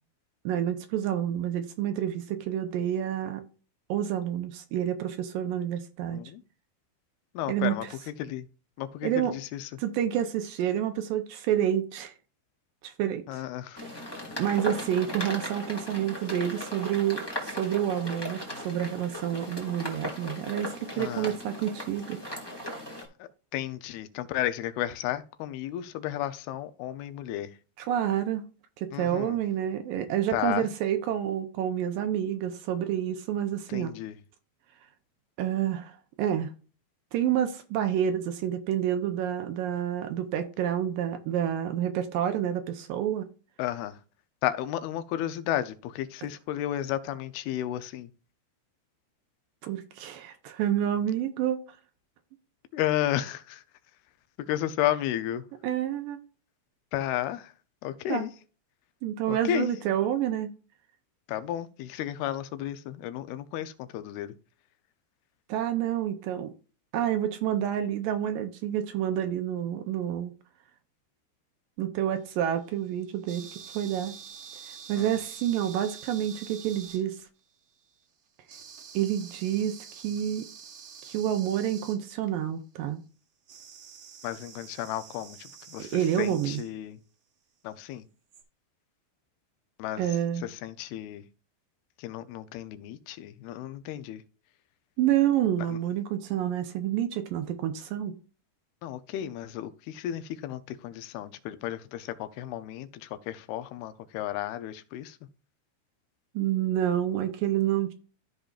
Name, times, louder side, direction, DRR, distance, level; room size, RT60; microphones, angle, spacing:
voice 1, 0.5-3.4 3.9-6.2 7.5-7.7 9.0-9.3 9.8-12.1 12.8-13.4 14.4-22.2 22.6-22.7 27.9-28.4 28.8-33.9 35.4-36.5 37.1-43.3 49.6-51.6 55.6-56.2 58.1-58.3 59.0-60.5 65.5-66.5 66.9-70.3 71.8-74.1 74.9-77.2 78.9-80.5 81.0-83.0 85.8-86.6 90.0-90.4 95.0-98.1 106.4-107.9, right 10 dB, 75° right, 2.2 m, -28 dB
voice 2, 6.1-6.4 7.3-8.5 8.8-9.7 13.3-14.4 20.9-21.3 23.2-27.6 28.9-29.4 30.3-30.7 33.7-34.2 43.6-44.0 44.4-48.1 52.7-53.6 54.4-55.5 56.9-57.5 57.8-58.3 59.3-59.7 61.3-64.4 75.0-75.1 84.2-87.0 87.6-88.1 89.8-91.2 92.0-94.2 95.7-95.8 98.8-105.2, left 12 dB, 85° left, 2.6 m, -33 dB
sound 1, 13.7-23.0, equal, 15° left, 0.9 m, -37 dB
sound 2, 72.2-77.4 78.5-82.0 83.5-86.7 88.3-88.4, right 7 dB, 55° right, 1.6 m, -47 dB
14.0 x 5.2 x 2.4 m
omnidirectional pair, 4.4 m